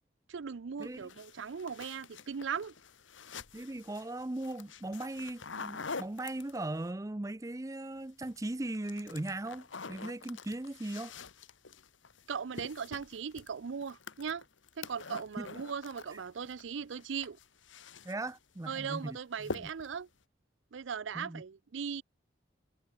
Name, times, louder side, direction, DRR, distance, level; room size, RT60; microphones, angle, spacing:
voice 1, 0.3-2.7 12.3-14.4 14.8-17.4 18.6-20.1 20.7-22.0, right 6 dB, 80° right, 0.5 m, -38 dB
sound 1, 0.8-6.9 8.0-8.4 8.7-16.6 16.9-18.4 18.7-19.0 19.4-20.0, left 4 dB, 85° left, 1.6 m, -46 dB
voice 2, 0.8-1.1 3.5-11.1 15.4-15.5 16.1-16.2 18.0-19.5 21.1-21.4, right 2 dB, 15° right, 0.5 m, -38 dB
head